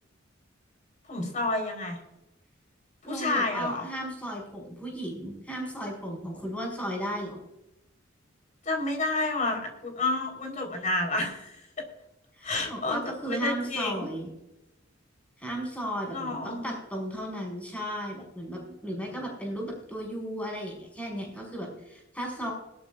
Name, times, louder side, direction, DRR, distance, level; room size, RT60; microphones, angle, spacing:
voice 1, 1.1-2.0 3.0-3.8 8.6-11.6 12.4-14.1 16.1-16.7, left 2 dB, 40° left, 2 dB, 4.3 m, -30 dB
voice 2, 3.0-7.4 12.4-14.3 15.4-22.5, equal, 5° left, -1 dB, 5.5 m, -35 dB
21.5 x 12.5 x 2.6 m, 0.92 s
head